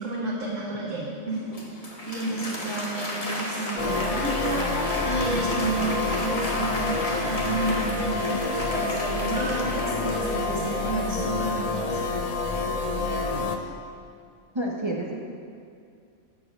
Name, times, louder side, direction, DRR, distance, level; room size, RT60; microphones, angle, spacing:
voice 1, 0.0-12.0, right 2 dB, 75° right, -5 dB, 1.7 m, -31 dB
Applause, 1.3-10.9, left 1 dB, 30° left, 1.2 m, -33 dB
sound 1, 3.8-13.6, left 3 dB, 55° left, 0.4 m, -28 dB
sound 2, 5.8-11.0, right 1 dB, 5° right, 1.5 m, -40 dB
voice 2, 14.5-15.2, right 1 dB, 25° right, -2 dB, 0.7 m, -30 dB
7.1 x 6.6 x 6.4 m, 2.4 s
omnidirectional pair, 1.3 m